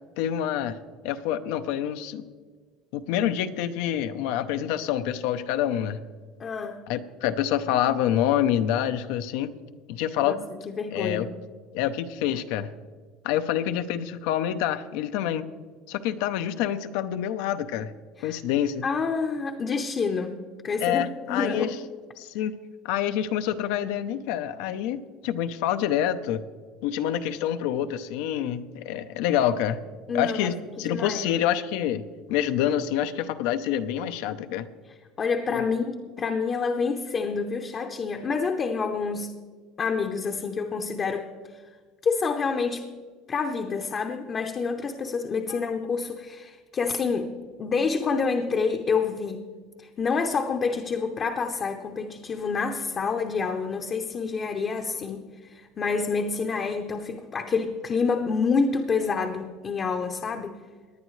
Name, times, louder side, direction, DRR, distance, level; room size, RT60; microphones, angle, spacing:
voice 1, 0.2-0.8 1.0-2.3 2.9-6.0 6.9-9.5 9.9-10.4 10.9-11.3 11.7-12.7 13.2-15.5 15.9-17.9 18.2-18.8 20.8-21.8 22.2-22.6 22.8-26.4 26.8-29.8 30.1-32.0 32.3-34.7 35.5-35.6 45.5-45.6, left 10 dB, 75° left, 10 dB, 0.7 m, -27 dB
voice 2, 6.4-6.8 10.2-10.4 10.8-11.3 18.2-18.4 18.8-21.0 21.3-21.7 30.1-31.2 35.2-39.3 39.8-41.6 42.0-42.9 43.3-47.3 47.6-49.4 49.8-60.6, left 5 dB, 30° left, 4 dB, 0.7 m, -28 dB
19.0 x 10.5 x 3.2 m, 1.5 s
cardioid pair, 135°, 0 cm